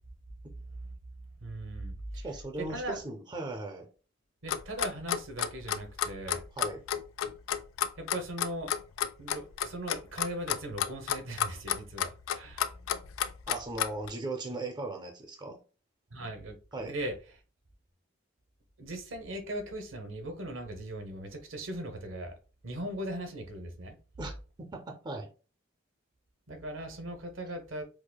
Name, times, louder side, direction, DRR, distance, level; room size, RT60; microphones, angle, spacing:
voice 1, 1.4-2.2 2.7-3.0 4.4-6.4 8.0-8.7 9.2-12.7 16.1-17.1 18.8-22.3 22.6-24.0 26.5-27.8, right 1 dB, 75° right, 0.8 m, -39 dB
voice 2, 2.2-3.9 6.5-6.8 13.5-15.6 16.7-17.0 24.2-24.3 24.6-25.3, right 2 dB, 20° right, 0.5 m, -38 dB
Clock, 4.5-14.1, left 10 dB, 90° left, 0.3 m, -31 dB
4.7 x 2.1 x 2.2 m
head